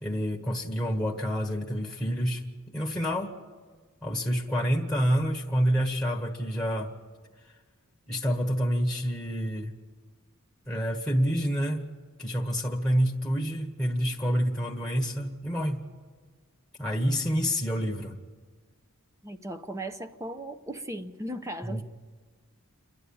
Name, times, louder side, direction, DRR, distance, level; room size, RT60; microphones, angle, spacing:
voice 1, 0.0-3.4 4.0-6.9 8.1-9.7 10.7-11.9 12.2-15.8 16.8-18.1 21.6-21.8, equal, 5° left, 1 dB, 1.4 m, -28 dB
voice 2, 19.2-21.8, right 1 dB, 15° right, 7 dB, 0.8 m, -37 dB
29.0 x 11.5 x 8.7 m, 1.5 s
head